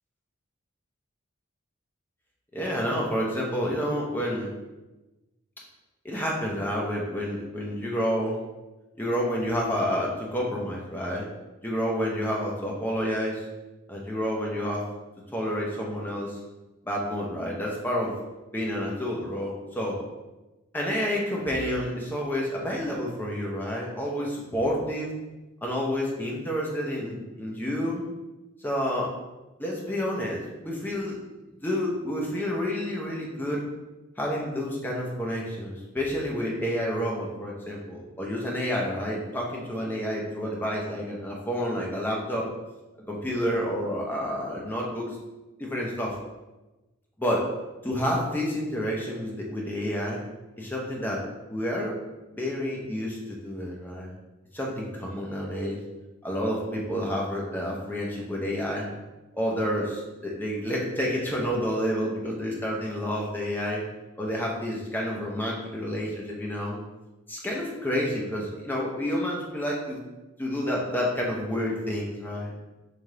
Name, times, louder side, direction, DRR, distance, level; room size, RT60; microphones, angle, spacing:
voice 1, 2.5-4.5 6.0-8.4 9.0-11.3 11.6-13.5 13.9-14.8 15.3-16.4 16.8-18.1 18.5-20.0 20.7-25.1 25.6-28.0 28.6-29.1 29.6-31.2 31.6-33.6 34.2-42.5 43.1-45.1 45.6-46.1 47.2-47.4 47.8-50.2 50.6-51.2 51.5-51.9 52.3-54.1 54.5-55.8 56.2-58.9 59.3-63.8 64.2-66.8 67.3-70.0 70.4-72.5, equal, 10° left, -3 dB, 0.7 m, -29 dB
3.4 x 3.3 x 3.7 m, 1.1 s
head